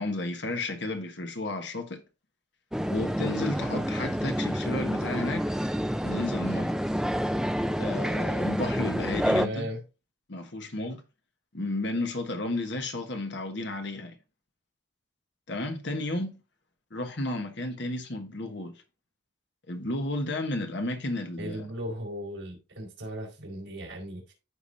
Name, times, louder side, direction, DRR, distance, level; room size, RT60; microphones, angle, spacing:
voice 1, 0.0-2.0 2.9-5.5 6.0-6.8 7.8-9.7 10.3-11.0 11.5-14.1 15.5-16.4 16.9-18.7 19.7-21.6, left 2 dB, 55° left, 1.2 m, -32 dB
sound 1, 2.7-9.5, equal, 5° right, 0.4 m, -28 dB
voice 2, 9.3-9.8 21.4-24.3, equal, 70° right, 4.6 m, -37 dB
14.0 x 4.9 x 2.7 m
head